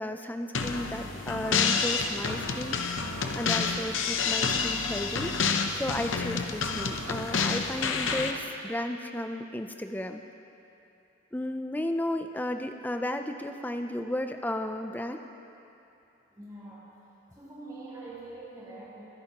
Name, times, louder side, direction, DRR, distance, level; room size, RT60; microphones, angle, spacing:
voice 1, 0.0-2.8 3.3-5.3 5.7-10.2 11.3-15.2, left 1 dB, 10° left, 6 dB, 0.4 m, -33 dB
sound 1, 0.5-8.3, left 5 dB, 80° left, 0.7 m, -29 dB
voice 2, 16.3-16.9 17.3-19.0, right 2 dB, 20° right, -10 dB, 3.4 m, -44 dB
24.5 x 10.5 x 3.0 m, 2.8 s
head